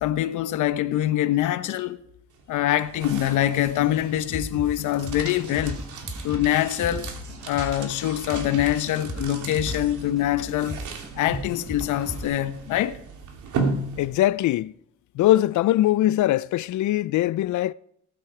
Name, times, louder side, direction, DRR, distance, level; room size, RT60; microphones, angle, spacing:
voice 1, 0.0-2.0 2.5-5.8 6.2-7.1 7.5-10.8 11.2-13.0, left 13 dB, 90° left, 1.0 m, -24 dB
sound 1, 2.3-14.5, right 4 dB, 75° right, 3.0 m, -36 dB
sound 2, 4.3-12.2, equal, ahead, 5.6 m, -37 dB
voice 2, 14.0-14.7 15.2-17.7, left 14 dB, 75° left, 0.5 m, -21 dB
18.5 x 8.9 x 4.9 m
cardioid pair, 90°, 30 cm